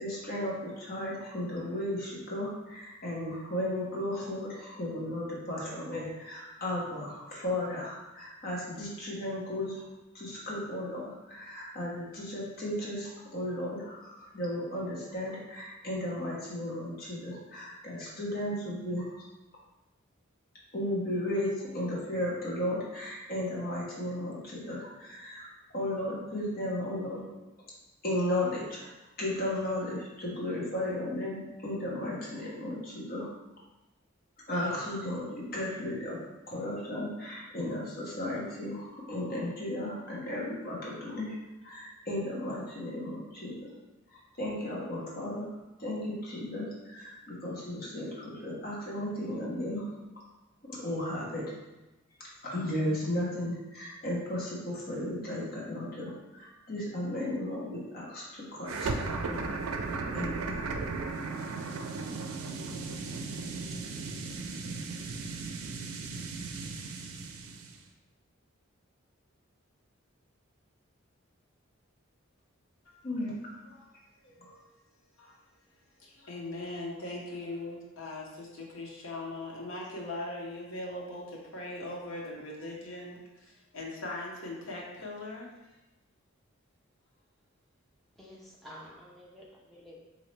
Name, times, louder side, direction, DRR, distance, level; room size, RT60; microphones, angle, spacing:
voice 1, 0.0-9.8 10.1-19.2 20.7-25.5 25.7-27.2 28.0-28.9 29.2-33.3 34.5-36.2 36.5-43.6 44.1-49.9 50.7-51.5 52.2-59.5 60.1-60.6 73.0-73.3 74.4-74.5, left 1 dB, 45° left, -5 dB, 1.1 m, -35 dB
sound 1, 58.6-67.8, right 4 dB, 90° right, 0.4 m, -36 dB
voice 2, 72.9-73.3 73.7-73.9 74.2-74.6 75.2-75.4 76.0-85.5, left 2 dB, 75° left, -2 dB, 0.9 m, -40 dB
voice 3, 88.2-90.0, equal, ahead, -5 dB, 0.6 m, -50 dB
4.1 x 2.7 x 3.2 m, 1.0 s
head